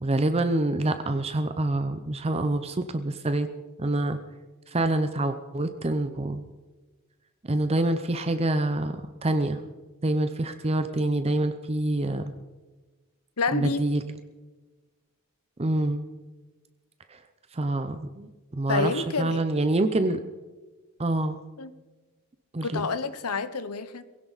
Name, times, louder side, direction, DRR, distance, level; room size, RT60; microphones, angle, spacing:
voice 1, 0.0-3.5 3.8-4.2 4.7-6.4 7.5-9.6 10.0-12.3 13.5-14.2 15.6-16.1 17.5-20.2 21.0-21.4 22.5-22.9, right 2 dB, 25° right, 9 dB, 0.6 m, -26 dB
voice 2, 13.4-13.8 18.7-19.5 21.6-21.7 22.6-24.0, left 4 dB, 85° left, 13 dB, 1.0 m, -28 dB
19.5 x 17.0 x 4.1 m, 1.3 s
head